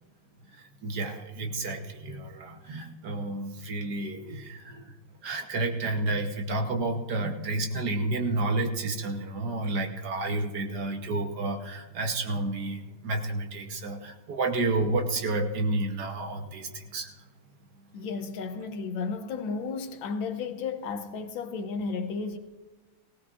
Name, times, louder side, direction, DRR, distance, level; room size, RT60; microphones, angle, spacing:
voice 1, 0.5-4.9 5.2-17.1, right 2 dB, 55° right, 1.4 m, -30 dB
voice 2, 17.9-22.4, left 4 dB, 70° left, 1.5 m, -33 dB
18.0 x 17.5 x 2.5 m
omnidirectional pair, 2.3 m